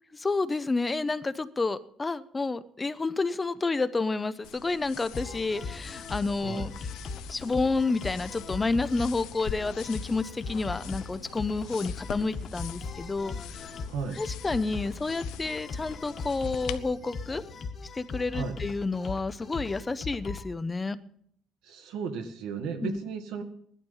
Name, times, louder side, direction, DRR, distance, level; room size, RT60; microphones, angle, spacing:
voice 1, 0.1-6.7 7.3-13.7 14.1-17.4 17.9-21.0 22.8-23.0, left 3 dB, 15° left, 14 dB, 0.6 m, -30 dB
sound 1, 4.4-16.8, left 12 dB, 85° left, 0.7 m, -45 dB
sound 2, 5.1-20.5, left 4 dB, 30° left, 1.4 m, -39 dB
voice 2, 13.9-14.2 18.3-18.6 21.6-23.4, right 5 dB, 90° right, 5 dB, 1.9 m, -34 dB
16.5 x 12.0 x 5.5 m, 0.67 s
cardioid pair, 155°, 0 cm